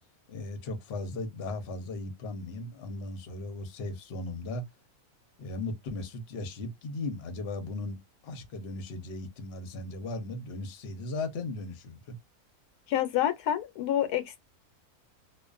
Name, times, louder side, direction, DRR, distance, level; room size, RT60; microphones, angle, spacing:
voice 1, 0.3-4.6 5.4-8.0 8.2-12.2, left 2 dB, 50° left, 0.9 m, -37 dB
voice 2, 12.9-14.4, left 11 dB, 90° left, 1.2 m, -28 dB
2.4 x 2.4 x 2.4 m
omnidirectional pair, 1.6 m